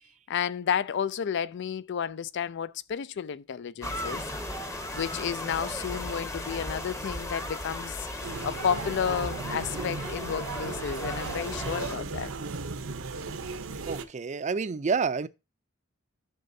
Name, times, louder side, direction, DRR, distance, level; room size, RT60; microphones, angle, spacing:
voice 1, 0.3-4.2 4.9-8.1 8.4-12.3, left 7 dB, 60° left, 0.4 m, -31 dB
sound 1, 3.8-12.0, left 1 dB, 15° left, 0.9 m, -36 dB
sound 2, 8.2-14.1, right 4 dB, 80° right, 0.7 m, -36 dB
voice 2, 13.9-15.3, right 5 dB, 35° right, 0.4 m, -28 dB
11.0 x 6.6 x 2.7 m
head